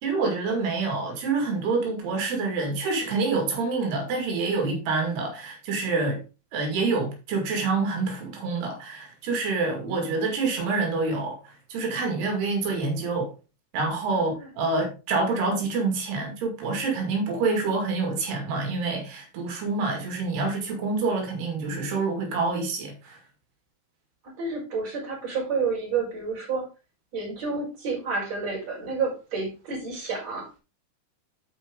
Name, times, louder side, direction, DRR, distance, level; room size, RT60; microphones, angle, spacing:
voice 1, 0.0-6.2 6.5-13.3 13.7-23.2, right 3 dB, 75° right, 4.2 m, -27 dB
voice 2, 14.1-14.5 24.4-26.7 27.1-30.5, right 4 dB, 40° right, 5.7 m, -30 dB
12.0 x 4.9 x 3.7 m
omnidirectional pair, 4.7 m